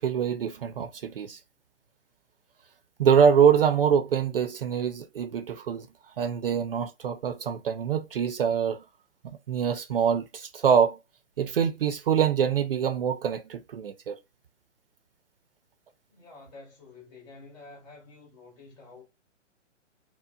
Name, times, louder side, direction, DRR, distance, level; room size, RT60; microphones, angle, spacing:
voice 1, 0.0-1.4 3.0-5.9 6.2-8.8 9.2-11.0 11.4-14.1, right 7 dB, 50° right, 0.4 m, -24 dB
voice 2, 16.1-19.0, left 3 dB, 35° left, 1.9 m, -49 dB
4.4 x 2.1 x 2.3 m
figure-of-eight pair, 130°, 37 cm